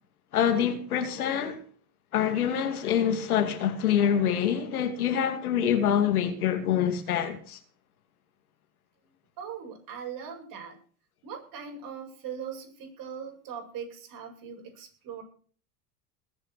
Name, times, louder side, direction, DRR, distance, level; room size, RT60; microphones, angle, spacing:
voice 1, 0.3-1.6 2.1-7.6, left 9 dB, 85° left, 2.7 m, -26 dB
voice 2, 9.4-10.8 11.2-15.2, right 7 dB, 50° right, 7.8 m, -40 dB
21.0 x 8.2 x 6.1 m
hypercardioid pair, 90°, 43 cm